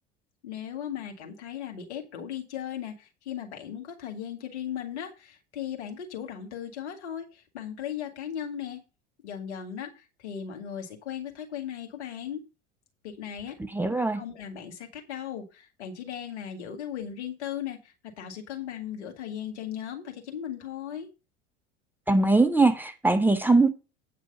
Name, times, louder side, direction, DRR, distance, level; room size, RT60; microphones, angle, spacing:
voice 1, 0.4-8.8 9.2-12.4 13.0-13.6 14.1-21.1, left 9 dB, 70° left, 2.2 m, -37 dB
voice 2, 13.7-14.2 22.1-23.7, right 3 dB, 5° right, 1.0 m, -21 dB
9.1 x 6.1 x 5.4 m
figure-of-eight pair, 70°, 35 cm